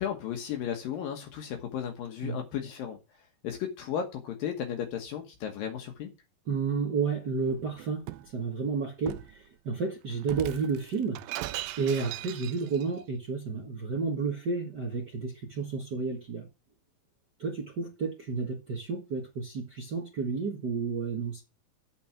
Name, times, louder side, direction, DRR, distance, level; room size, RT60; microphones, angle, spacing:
voice 1, 0.0-3.0 3.4-6.1, left 9 dB, 75° left, 3.0 m, -34 dB
voice 2, 6.5-11.2 11.4-16.4 17.4-21.4, right 5 dB, 50° right, 1.2 m, -31 dB
Shatter, 7.5-8.3 9.1-9.4 10.2-12.9, right 16 dB, 85° right, 2.4 m, -39 dB
8.7 x 6.9 x 5.9 m
omnidirectional pair, 4.1 m